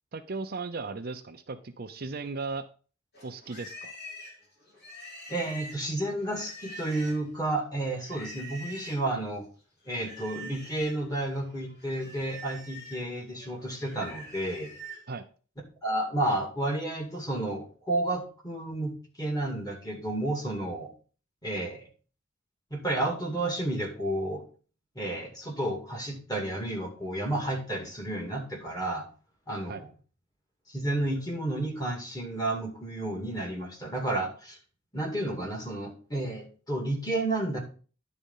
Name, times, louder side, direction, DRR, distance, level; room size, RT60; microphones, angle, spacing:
voice 1, 0.1-2.7 3.2-3.9 15.1-15.2 29.7-29.8, right 4 dB, 50° right, 8 dB, 0.6 m, -36 dB
Livestock farm animals working animals, 3.1-7.4 8.0-9.1 9.9-11.0 11.4-15.1, equal, 50° left, 3.2 m, -45 dB
voice 2, 5.3-9.4 9.9-14.7 15.8-18.9 19.2-20.9 21.4-21.9 22.7-24.4 25.0-29.0 29.5-29.9 30.7-34.6 34.9-37.6, right 1 dB, 20° left, 1 dB, 2.2 m, -31 dB
10.0 x 4.2 x 5.5 m, 0.39 s
head